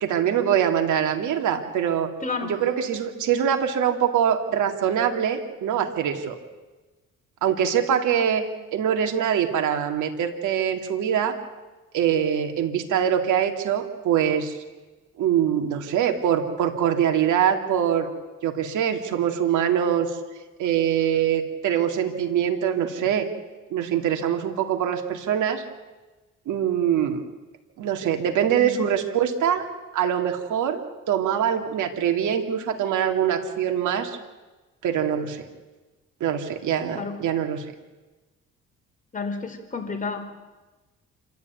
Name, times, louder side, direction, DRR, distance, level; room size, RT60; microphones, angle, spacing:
voice 1, 0.0-2.1 2.4-6.4 7.4-8.4 8.7-11.4 11.9-14.6 15.2-18.1 18.4-20.2 20.6-23.3 23.7-25.6 26.5-27.2 27.8-29.6 29.9-34.2 34.8-35.5 36.2-37.6, right 9 dB, 80° right, 4 dB, 2.5 m, -23 dB
voice 2, 2.2-2.6 28.5-28.8 37.0-37.2 39.1-40.3, left 4 dB, 25° left, 3 dB, 4.4 m, -30 dB
27.0 x 13.0 x 9.4 m, 1.2 s
cardioid pair, 90°, 30 cm